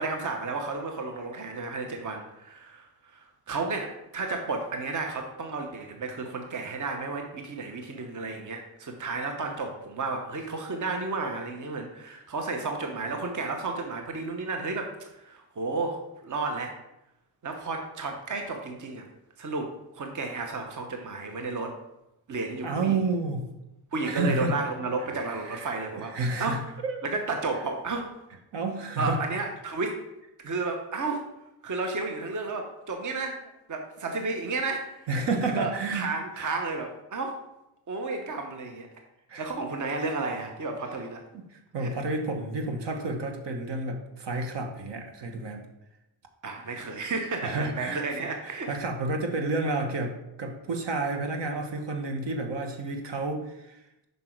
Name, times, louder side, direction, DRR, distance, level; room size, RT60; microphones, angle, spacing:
voice 1, 0.0-2.9 3.1-16.7 17.4-19.1 19.4-21.8 22.3-23.0 23.9-26.1 26.4-26.6 27.0-28.1 29.0-30.0 30.4-31.2 31.6-35.1 35.6-37.4 37.9-38.9 39.4-41.2 41.8-41.9 46.4-48.8, right 3 dB, 40° right, 4 dB, 1.0 m, -32 dB
voice 2, 22.6-23.4 24.0-24.5 25.4-27.0 28.5-29.2 35.1-36.5 39.3-39.5 41.3-45.6 47.4-54.0, right 3 dB, 60° right, 4 dB, 1.2 m, -31 dB
5.9 x 5.3 x 4.5 m, 0.90 s
cardioid pair, 70°, 47 cm